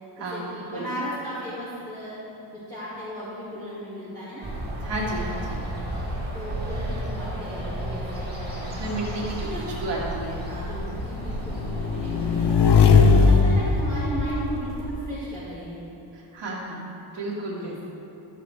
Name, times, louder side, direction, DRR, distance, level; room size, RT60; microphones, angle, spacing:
voice 1, 0.2-2.2 2.5-4.5 6.3-8.6 9.4-10.1 10.5-12.5 12.9-15.8 17.4-17.7, equal, 10° left, -14 dB, 2.2 m, -35 dB
sound 1, 4.4-12.5, right 1 dB, 20° right, 2.1 m, -33 dB
voice 2, 4.8-5.6 8.8-9.5 9.8-10.4 12.5-12.7 16.1-16.8 17.1-17.8, right 2 dB, 60° right, -4 dB, 2.0 m, -32 dB
Motorcycle / Engine, 7.9-15.0, left 4 dB, 55° left, 0.7 m, -21 dB
13.0 x 7.4 x 3.4 m, 2.9 s
wide cardioid pair, 180°, 48 cm